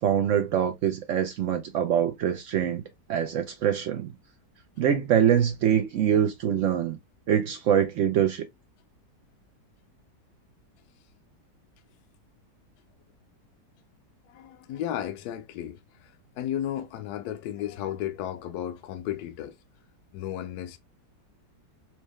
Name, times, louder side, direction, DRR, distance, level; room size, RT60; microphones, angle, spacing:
voice 1, 0.0-2.8 3.1-4.1 4.8-7.0 7.3-8.4, right 9 dB, 90° right, 0.6 m, -24 dB
voice 2, 14.3-19.6 20.1-20.8, left 11 dB, 70° left, 1.0 m, -34 dB
4.5 x 2.2 x 3.0 m
omnidirectional pair, 1.9 m